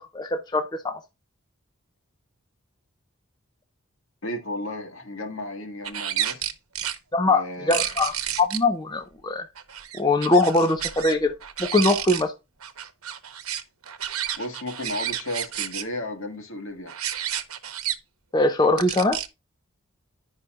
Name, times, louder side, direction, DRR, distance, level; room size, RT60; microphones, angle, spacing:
voice 1, 0.1-1.0 7.1-9.5 10.0-11.3 11.6-12.3 18.3-19.2, left 2 dB, 20° left, 0.5 m, -22 dB
voice 2, 4.2-6.5 7.2-7.8 14.3-17.0, left 1 dB, 70° left, 1.8 m, -34 dB
sound 1, 5.9-7.0 7.7-8.6 9.6-11.1 11.4-12.2 12.6-15.8 16.9-18.0 18.8-19.3, right 10 dB, 85° right, 0.9 m, -30 dB
10.0 x 5.5 x 2.5 m
head